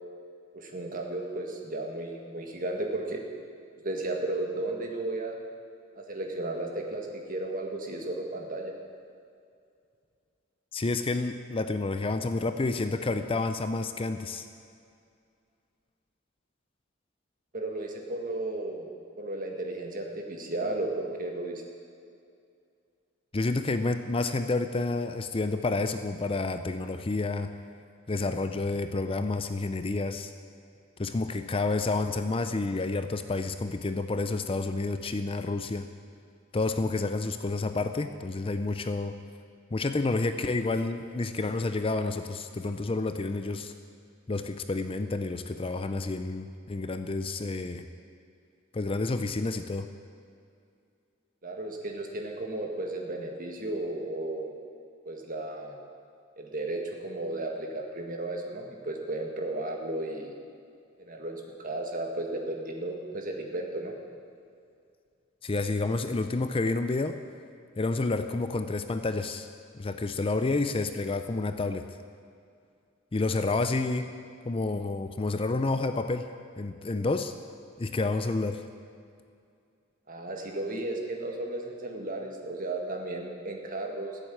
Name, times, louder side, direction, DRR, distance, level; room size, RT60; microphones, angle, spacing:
voice 1, 0.5-3.2 3.8-5.4 6.0-8.7 17.5-18.9 19.2-21.6 51.4-54.5 55.1-55.7 56.4-60.3 61.0-63.9 80.1-84.2, right 2 dB, 45° right, 2 dB, 1.9 m, -34 dB
voice 2, 10.7-14.5 23.3-27.5 28.1-30.3 31.0-35.9 36.5-39.1 39.7-43.7 44.3-47.9 48.7-49.9 65.4-67.2 67.8-69.5 69.7-71.8 73.1-74.1 74.4-76.3 76.6-77.3 77.8-78.6, left 3 dB, 25° left, 9 dB, 0.5 m, -29 dB
15.0 x 7.9 x 8.7 m, 2.4 s
head